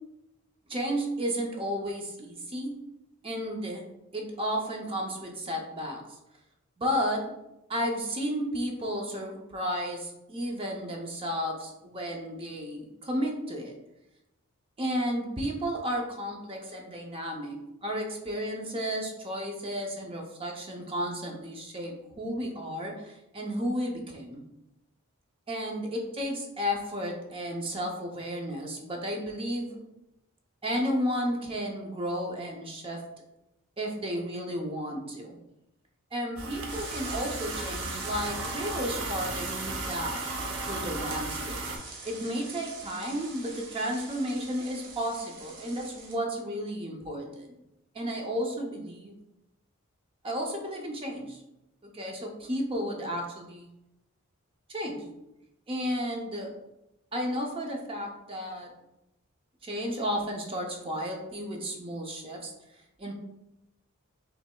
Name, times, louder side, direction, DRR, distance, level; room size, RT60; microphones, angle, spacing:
voice 1, 0.7-2.8 3.2-3.8 4.1-6.0 6.8-7.3 7.7-13.7 14.8-24.4 25.5-29.8 30.6-33.0 33.8-35.4 36.1-40.2 40.7-41.6 42.0-47.5 47.9-49.2 50.2-51.4 51.8-53.7 54.7-55.1 55.7-56.5 57.1-58.7 59.6-62.5 63.0-63.1, equal, 25° right, 0 dB, 0.6 m, -33 dB
sound 1, 36.4-41.8, right 2 dB, 75° right, 0.7 m, -35 dB
sound 2, 36.7-46.1, right 3 dB, 55° right, 1.0 m, -43 dB
5.7 x 3.2 x 2.2 m, 0.89 s
head